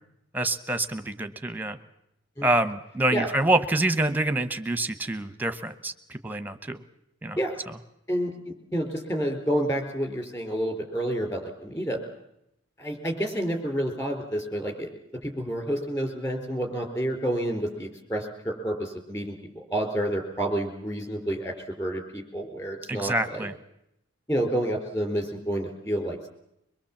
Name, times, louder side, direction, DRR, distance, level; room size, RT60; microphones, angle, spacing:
voice 1, 0.3-1.8 2.4-6.8 7.2-7.4 7.7-7.8 22.9-23.5, right 2 dB, 10° right, 10 dB, 1.0 m, -26 dB
voice 2, 8.1-12.0 12.8-14.9 15.2-23.5 24.3-26.3, right 1 dB, 15° left, 4 dB, 4.2 m, -29 dB
23.0 x 22.0 x 7.3 m, 0.81 s
head